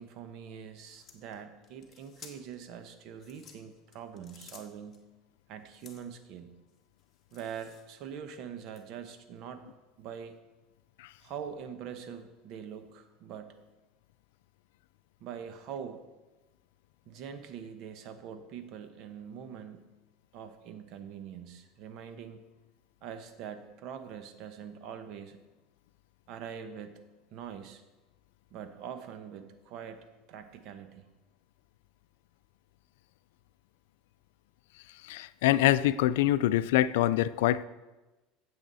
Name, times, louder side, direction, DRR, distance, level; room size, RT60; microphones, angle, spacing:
voice 1, 0.0-5.1 5.5-6.6 7.3-9.7 10.0-10.4 11.2-13.6 15.2-16.0 17.1-19.9 20.3-22.4 23.0-25.4 26.3-27.0 27.3-27.8 28.5-31.1, right 8 dB, 55° right, 8 dB, 1.1 m, -43 dB
sound 1, 0.9-2.6 3.1-5.0 5.7-6.2 6.7-8.1 8.7-8.8, left 6 dB, 30° left, 1.8 m, -55 dB
voice 2, 35.0-37.7, left 14 dB, 85° left, 16 dB, 0.4 m, -25 dB
15.5 x 7.1 x 4.1 m, 1.1 s
supercardioid pair, 125°, 0 cm